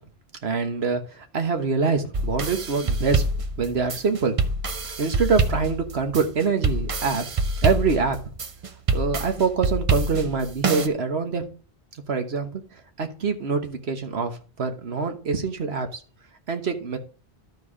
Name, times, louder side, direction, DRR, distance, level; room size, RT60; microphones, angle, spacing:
voice 1, 0.4-3.2 3.6-4.3 5.0-7.2 7.6-8.2 8.9-11.4 12.1-12.6 13.0-16.0 16.5-17.0, right 4 dB, 75° right, 6 dB, 1.5 m, -25 dB
sound 1, 2.1-10.9, right 3 dB, 40° right, 0.6 m, -26 dB
12.5 x 4.7 x 4.8 m, 0.37 s
omnidirectional pair, 1.1 m